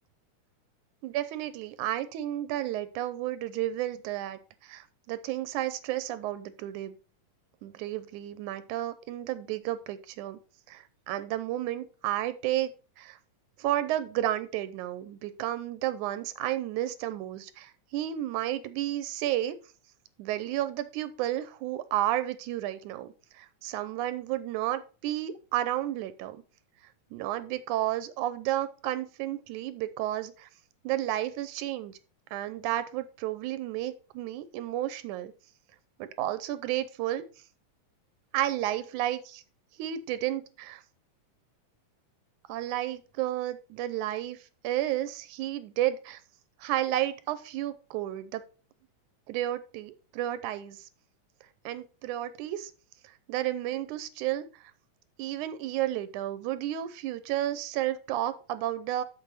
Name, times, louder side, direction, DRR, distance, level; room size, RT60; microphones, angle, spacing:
voice 1, 1.0-7.0 7.6-10.4 10.7-13.2 13.6-19.6 20.2-26.4 27.1-30.5 30.8-31.9 32.3-35.3 36.0-37.2 38.3-39.4 39.8-40.8 42.5-46.2 46.6-48.4 49.3-50.9 51.7-52.7 53.0-54.7 55.2-59.0, right 13 dB, 85° right, 13 dB, 2.1 m, -32 dB
6.8 x 6.5 x 4.2 m, 0.35 s
omnidirectional pair, 3.5 m